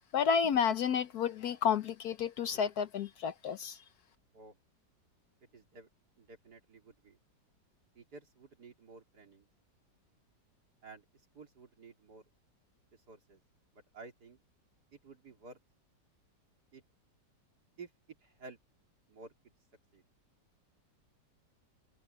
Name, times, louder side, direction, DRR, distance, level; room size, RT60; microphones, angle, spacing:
voice 1, 0.1-3.8, left 7 dB, 65° left, 1.1 m, -31 dB
voice 2, 5.5-5.9 6.2-7.2 7.9-9.5 10.8-11.0 11.3-12.2 12.9-13.4 13.7-14.4 14.9-15.6 16.7-16.8 17.8-17.9 18.2-18.6 19.1-19.5 19.9-20.0, right 4 dB, 60° right, 3.8 m, -53 dB
omnidirectional pair, 2.0 m